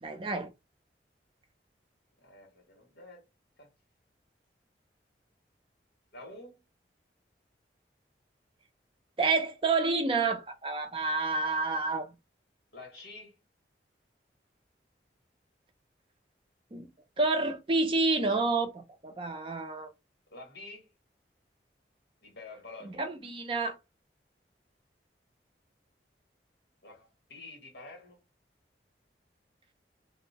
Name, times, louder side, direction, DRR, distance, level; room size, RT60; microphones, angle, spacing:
voice 1, 0.0-0.5 9.2-12.1 16.7-16.9 17.2-19.9 22.8-23.8, right 3 dB, 30° right, 0.4 m, -29 dB
voice 2, 2.2-3.2 3.6-3.7 6.1-6.6 12.7-13.4 20.3-20.9 22.2-23.1 26.8-28.2, left 2 dB, 65° left, 1.4 m, -48 dB
2.6 x 2.0 x 2.8 m
head